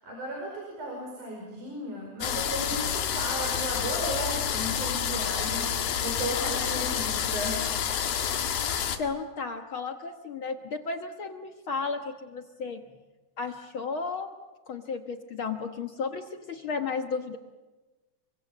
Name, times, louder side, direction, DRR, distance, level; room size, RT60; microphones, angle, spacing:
voice 1, 0.0-7.9, equal, 60° right, 0 dB, 6.6 m, -35 dB
sound 1, 2.2-9.0, left 8 dB, 85° left, 3.5 m, -29 dB
voice 2, 9.0-12.8 13.4-14.3 14.7-17.4, left 4 dB, 60° left, 6 dB, 1.4 m, -33 dB
29.0 x 24.5 x 7.3 m, 1.2 s
omnidirectional pair, 4.0 m